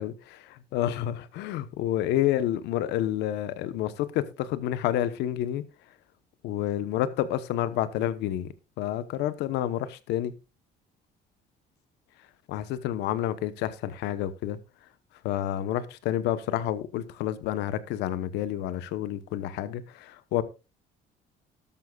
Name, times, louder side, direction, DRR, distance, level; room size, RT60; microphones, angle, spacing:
voice 1, 0.0-5.6 6.4-10.3 12.5-14.6 15.2-20.4, left 12 dB, 85° left, 14 dB, 1.0 m, -29 dB
12.5 x 12.5 x 2.4 m, 0.28 s
cardioid pair, 110°, 17 cm